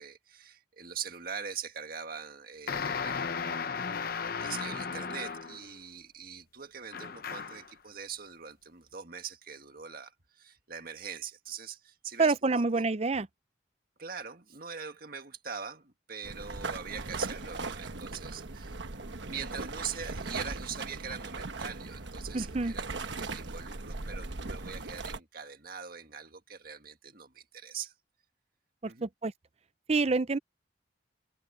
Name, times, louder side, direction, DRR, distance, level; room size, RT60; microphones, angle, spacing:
voice 1, 0.0-3.4 4.4-12.9 14.0-18.8 19.3-27.9 28.8-29.1, right 7 dB, 50° right, 1.8 m, -42 dB
sound 1, 2.7-5.7 6.9-7.7, left 5 dB, 50° left, 0.8 m, -35 dB
voice 2, 12.2-13.3 22.3-22.7 28.8-29.3 29.9-30.4, right 3 dB, 35° right, 0.5 m, -27 dB
sound 2, 16.2-25.2, right 3 dB, 70° right, 1.2 m, -39 dB
head